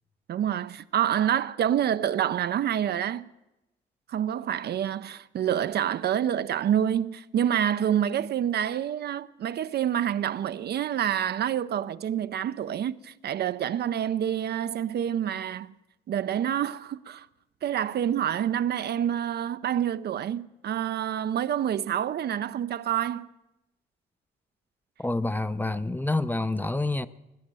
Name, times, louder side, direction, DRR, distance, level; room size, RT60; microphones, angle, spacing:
voice 1, 0.3-3.2 4.1-15.7 16.1-17.3 17.6-23.3, right 10 dB, 55° right, 0.5 m, -27 dB
voice 2, 25.0-27.1, left 2 dB, 10° left, 0.5 m, -27 dB
17.0 x 10.5 x 7.5 m
cardioid pair, 90°, 20 cm